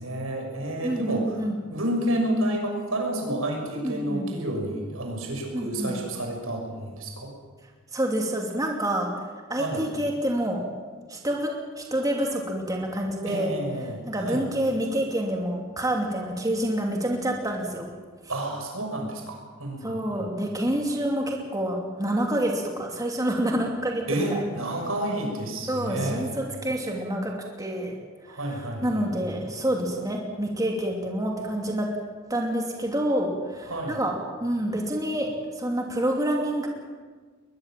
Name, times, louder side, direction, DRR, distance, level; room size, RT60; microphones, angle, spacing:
voice 1, 0.0-1.4 1.7-7.3 9.5-9.8 13.2-14.4 18.3-20.3 24.1-26.5 28.3-29.1 33.7-34.0, right 1 dB, 80° right, 2 dB, 6.3 m, -30 dB
voice 2, 0.8-1.6 3.8-4.3 5.5-5.9 7.9-9.1 9.5-10.7 11.1-11.5 11.8-13.6 14.1-17.9 19.8-24.4 25.7-28.0 28.3-31.9 32.3-34.1 34.4-36.7, right 1 dB, 15° right, 0 dB, 2.8 m, -27 dB
21.5 x 21.0 x 7.6 m, 1.4 s
head